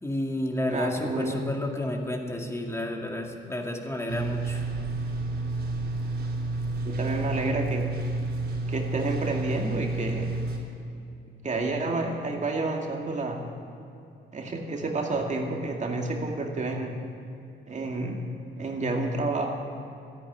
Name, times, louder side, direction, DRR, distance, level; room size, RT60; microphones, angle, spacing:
voice 1, 0.0-4.7, left 1 dB, 15° left, 2 dB, 2.2 m, -31 dB
voice 2, 0.7-1.4 6.8-7.9 8.7-10.3 11.4-13.4 14.3-17.0 17.7-18.2 18.6-19.5, right 2 dB, 35° right, 1 dB, 2.2 m, -29 dB
sound 1, 4.1-10.6, right 2 dB, 55° right, 3.5 m, -30 dB
13.5 x 10.5 x 9.3 m, 2.7 s
cardioid pair, 90°, 20 cm